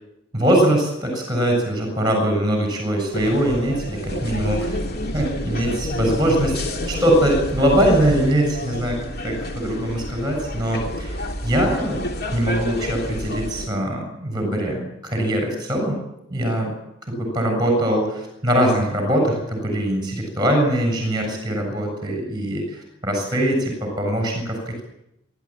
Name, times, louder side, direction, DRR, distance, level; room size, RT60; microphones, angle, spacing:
voice 1, 0.3-4.8 5.1-9.0 9.2-16.0 16.3-16.7 17.1-24.8, right 1 dB, 20° right, 3 dB, 7.6 m, -22 dB
sound 1, 3.1-13.7, left 1 dB, 45° left, 2.6 m, -29 dB
26.5 x 13.5 x 9.2 m, 0.84 s
head